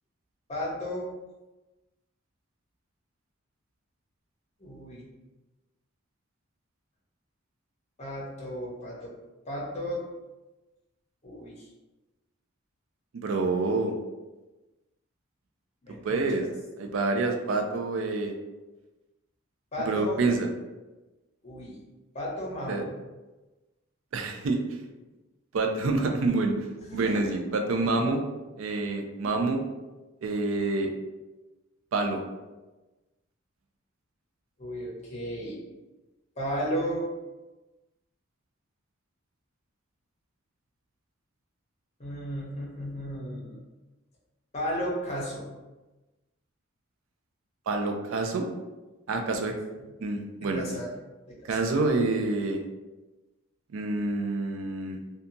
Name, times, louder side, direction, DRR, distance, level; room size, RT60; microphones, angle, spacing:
voice 1, 0.5-1.1 4.6-5.1 8.0-9.1 9.5-10.0 11.2-11.7 15.8-16.5 19.7-20.2 21.4-21.8 22.1-22.9 26.8-27.4 27.8-27.9 28.6-28.8 34.6-35.6 36.4-37.1 42.0-43.6 44.5-45.5 50.4-50.9 51.3-51.7, equal, 30° left, -4 dB, 0.7 m, -34 dB
voice 2, 13.1-13.9 16.0-16.5 16.8-18.3 19.8-20.5 22.7-22.8 24.1-24.8 25.5-26.7 26.9-28.2 28.6-29.6 30.2-30.9 31.9-32.2 47.7-48.5 49.1-49.5 50.0-50.7 51.5-52.6 53.7-55.0, right 3 dB, 70° right, 4 dB, 0.4 m, -27 dB
2.7 x 2.2 x 2.5 m, 1.1 s
head